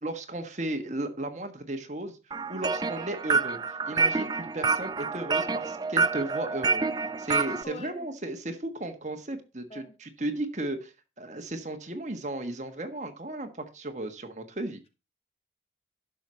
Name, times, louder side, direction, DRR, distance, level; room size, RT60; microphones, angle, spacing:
voice 1, 0.0-2.2 2.5-3.6 3.9-6.8 7.2-13.5 13.7-14.8, right 1 dB, 40° right, 1.4 m, -35 dB
sound 1, 2.3-7.6, right 4 dB, 25° right, 0.4 m, -28 dB
voice 2, 7.6-8.3 9.7-9.9, left 1 dB, 35° left, 1.2 m, -44 dB
11.5 x 6.3 x 4.3 m
head